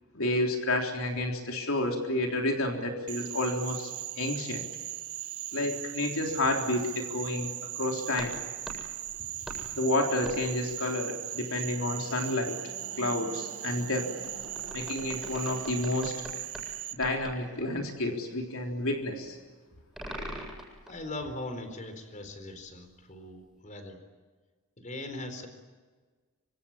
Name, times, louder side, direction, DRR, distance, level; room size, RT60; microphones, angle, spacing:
voice 1, 0.1-4.6 5.5-8.4 9.7-12.6 13.0-14.1 14.7-16.1 16.9-19.4, left 1 dB, 70° left, 2 dB, 3.7 m, -30 dB
Frog, 3.1-16.9, right 14 dB, 80° right, 1.4 m, -39 dB
sound 1, 8.2-9.7 10.3-10.5 14.2-16.7 17.0-17.4 20.0-21.2 22.7-22.8, right 1 dB, ahead, 7.7 m, -43 dB
sound 2, 11.5-16.1, right 2 dB, 60° right, 4.3 m, -48 dB
voice 2, 20.9-24.0 24.8-25.5, left 2 dB, 35° left, 8 dB, 4.3 m, -40 dB
26.0 x 25.5 x 8.9 m, 1.4 s
head